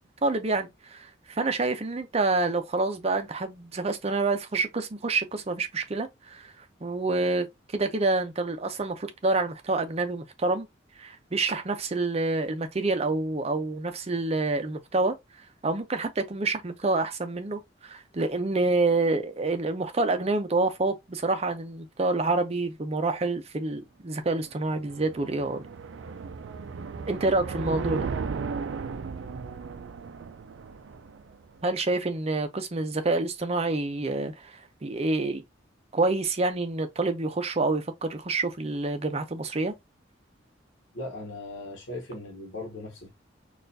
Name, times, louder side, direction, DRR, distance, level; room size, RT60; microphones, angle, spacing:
voice 1, 0.2-6.5 6.8-7.5 7.7-10.7 11.0-15.1 15.6-25.6 27.1-28.1 31.6-35.4 35.9-39.7, right 3 dB, 35° right, 0.6 m, -27 dB
sound 1, 24.4-31.6, right 5 dB, 75° right, 0.4 m, -36 dB
voice 2, 40.9-43.1, left 2 dB, 80° left, 1.0 m, -38 dB
4.3 x 2.4 x 2.6 m
head